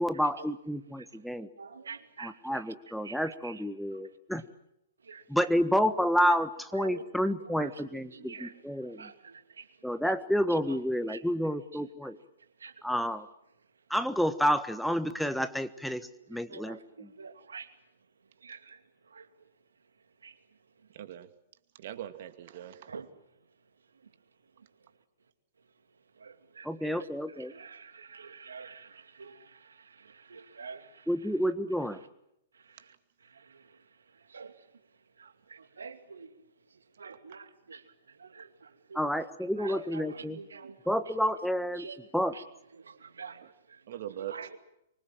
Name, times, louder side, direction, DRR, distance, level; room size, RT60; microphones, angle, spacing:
voice 1, 0.0-1.5 2.2-4.4 5.3-9.1 9.8-12.2 12.8-13.3 13.9-17.1 26.6-27.5 31.1-32.0 38.9-40.4 40.9-42.3, equal, ahead, 1.4 m, -30 dB
voice 2, 1.6-2.3 3.1-3.5 5.1-5.2 6.8-7.0 7.6-8.5 9.0-9.6 11.1-11.2 12.6-12.7 16.5-17.7 18.4-18.8 19.1-19.3 20.2-20.3 22.9-23.1 26.2-27.1 27.5-29.6 30.0-30.9 34.3-34.5 35.2-36.3 37.0-37.8 38.2-39.0 39.6-40.8 41.8-42.0 42.8-43.4 44.2-44.6, right 5 dB, 80° right, 2.7 m, -46 dB
voice 3, 20.9-21.3 21.8-22.9 43.4-43.5 43.9-44.3, right 11 dB, 55° right, 2.3 m, -41 dB
25.0 x 24.5 x 7.7 m
figure-of-eight pair, 115°, 0 cm